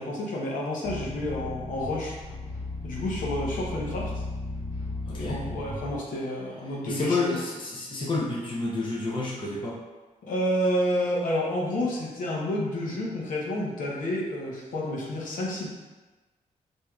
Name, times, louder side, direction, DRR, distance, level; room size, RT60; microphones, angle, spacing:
voice 1, 0.0-2.2 2.8-4.2 5.1-7.2 10.2-15.7, left 1 dB, 80° left, -3 dB, 0.8 m, -29 dB
sound 1, 0.8-6.0, left 2 dB, 55° left, 1.5 m, -35 dB
voice 2, 5.1-5.4 6.9-9.8, left 3 dB, 35° left, -3 dB, 0.6 m, -29 dB
4.4 x 2.7 x 2.3 m, 1.2 s
wide cardioid pair, 130°, 13 cm